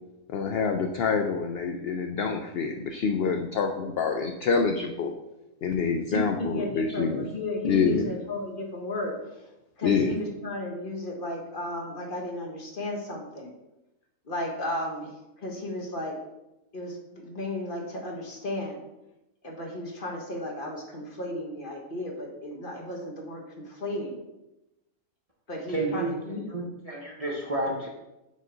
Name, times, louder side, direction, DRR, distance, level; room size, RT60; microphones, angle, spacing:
voice 1, 0.3-5.1 5.6-7.3 7.6-8.1 9.8-10.1, left 5 dB, 65° left, 4 dB, 0.6 m, -26 dB
voice 2, 6.1-9.4 9.8-13.5 14.3-15.1 15.4-16.2 16.7-18.8 19.4-24.1 25.5-26.5, left 1 dB, 40° left, 1 dB, 1.1 m, -34 dB
voice 3, 25.7-27.9, right 2 dB, 30° right, -2 dB, 0.8 m, -31 dB
5.0 x 4.0 x 5.4 m, 0.95 s
omnidirectional pair, 1.5 m